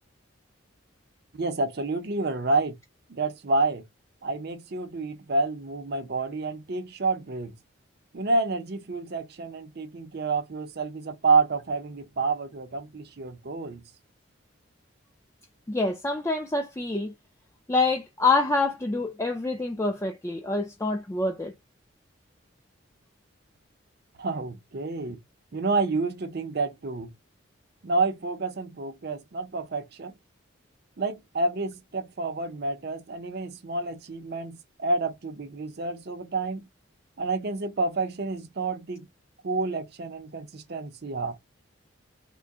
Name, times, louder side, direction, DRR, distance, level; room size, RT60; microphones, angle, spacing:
voice 1, 1.3-2.8 3.1-3.8 4.2-7.6 8.1-13.8 24.2-25.2 25.5-27.1 27.8-30.1 31.0-36.7 37.2-39.1 39.4-41.4, right 3 dB, 50° right, 0.6 m, -29 dB
voice 2, 15.7-17.1 17.7-21.5, left 3 dB, 15° left, 0.4 m, -26 dB
3.7 x 2.1 x 3.5 m
head